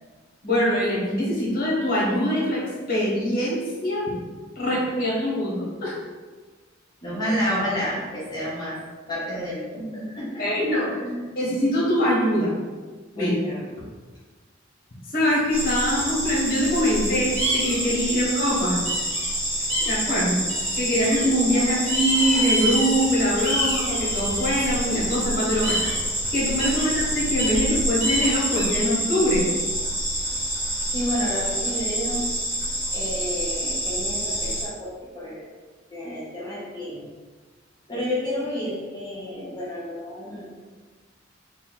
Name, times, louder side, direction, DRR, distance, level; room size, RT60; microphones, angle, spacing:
voice 1, 0.4-2.6 2.9-4.0 4.5-6.0 10.4-11.0 11.3-12.5 13.1-13.3 15.1-18.8 19.9-20.4 20.8-25.9 26.3-29.4, equal, 50° left, -5 dB, 1.3 m, -23 dB
voice 2, 4.7-5.2 7.0-8.8 9.1-10.4 11.0-11.2 13.2-13.6 18.1-18.3 19.8-19.9 30.9-32.3 32.9-35.5 35.9-37.0 37.9-40.5, equal, 20° left, -9 dB, 1.1 m, -30 dB
sound 1, 15.5-34.6, right 1 dB, 10° right, 0.9 m, -27 dB
sound 2, 17.4-17.9 18.8-19.3 19.7-20.0 20.5-21.2 21.9-23.1 23.4-24.7 25.6-26.0 26.6-26.9 27.4-27.6 28.0-28.8, equal, 85° right, 1.2 m, -27 dB
3.7 x 2.3 x 3.8 m, 1.4 s
head